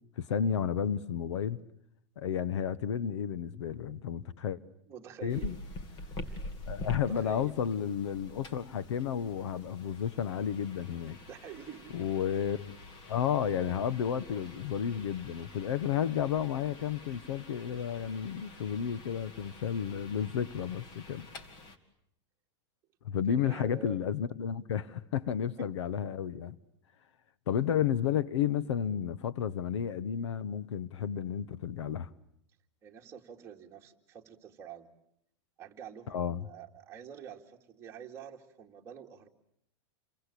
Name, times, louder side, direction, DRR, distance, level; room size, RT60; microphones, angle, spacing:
voice 1, 0.2-1.6 2.2-4.6 5.2-5.5 6.7-11.2 11.9-12.8 13.1-21.3 23.0-26.6 27.5-32.1 36.1-36.5, left 8 dB, 85° left, 1.3 m, -32 dB
voice 2, 4.9-5.6 6.3-6.5 7.1-7.5 11.1-12.0 23.4-24.0 25.6-25.7 32.8-34.9 35.6-39.3, right 8 dB, 20° right, 2.4 m, -47 dB
sound 1, 5.3-21.8, left 2 dB, 30° left, 2.4 m, -47 dB
29.0 x 24.0 x 8.4 m
supercardioid pair, 160°, 15 cm